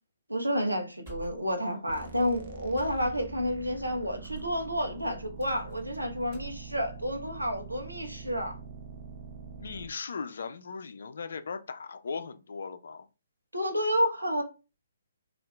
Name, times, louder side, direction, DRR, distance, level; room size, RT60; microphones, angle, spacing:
voice 1, 0.3-8.5 13.5-14.4, equal, 90° right, 0.8 m, -30 dB
sound 1, 1.1-1.7 2.0-2.1 2.8-3.4 4.2-4.6 5.4-6.0 6.2-7.0, right 4 dB, 20° right, 1.3 m, -46 dB
sound 2, 1.9-9.9, right 4 dB, 40° right, 0.6 m, -45 dB
voice 2, 9.6-13.1, left 5 dB, 60° left, 0.4 m, -38 dB
2.7 x 2.4 x 3.3 m
figure-of-eight pair, 130°, 0 cm